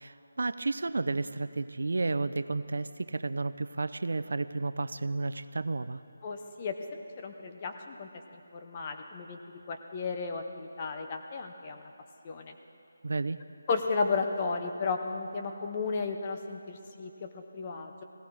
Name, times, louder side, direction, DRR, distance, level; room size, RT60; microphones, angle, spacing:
voice 1, 0.0-6.0 13.0-13.4, right 3 dB, 70° right, 13 dB, 0.5 m, -32 dB
voice 2, 6.2-8.1 8.5-9.4 9.7-11.8 12.2-12.5 13.7-18.0, left 4 dB, 25° left, 5 dB, 0.9 m, -34 dB
17.0 x 16.0 x 4.7 m, 2.8 s
figure-of-eight pair, 170°, 0 cm